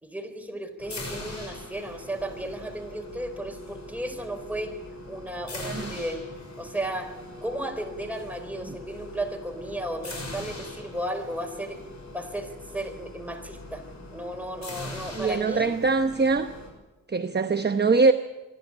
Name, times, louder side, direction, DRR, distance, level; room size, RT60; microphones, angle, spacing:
voice 1, 0.0-4.8 5.1-6.2 6.6-11.8 12.1-13.8 14.1-15.7, right 1 dB, 5° right, 5 dB, 4.3 m, -34 dB
sound 1, 0.8-16.7, left 2 dB, 50° left, 6.6 m, -41 dB
voice 2, 5.6-5.9 15.1-16.5 17.1-18.1, right 4 dB, 30° right, 8 dB, 1.0 m, -23 dB
26.0 x 11.5 x 8.9 m, 1.1 s
cardioid pair, 70°, 35 cm